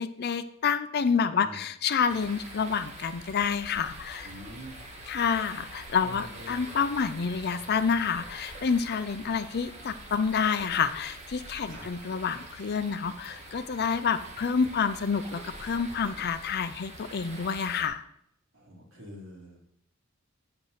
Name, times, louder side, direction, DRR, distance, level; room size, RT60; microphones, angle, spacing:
voice 1, 0.0-4.3 5.1-18.0, left 6 dB, 50° left, 11 dB, 0.5 m, -28 dB
sound 1, 2.1-17.9, right 1 dB, 35° right, 1.7 m, -45 dB
voice 2, 4.2-4.7 6.0-6.7 11.6-11.9 16.0-16.3 18.5-19.6, equal, 70° right, -3 dB, 3.2 m, -46 dB
8.9 x 6.6 x 4.1 m, 0.69 s
head